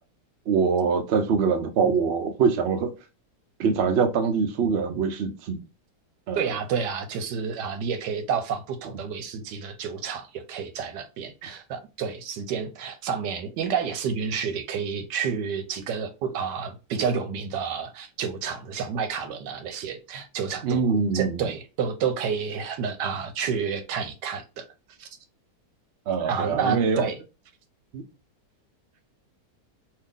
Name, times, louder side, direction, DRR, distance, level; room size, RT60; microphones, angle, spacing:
voice 1, 0.5-2.9 3.6-5.6 6.3-6.5 20.6-21.5 26.1-27.1 27.9-28.0, right 5 dB, 65° right, 0.6 m, -24 dB
voice 2, 6.3-20.9 21.1-24.6 25.0-25.1 26.3-27.2, right 6 dB, 85° right, 1.3 m, -30 dB
2.8 x 2.7 x 3.6 m
omnidirectional pair, 1.8 m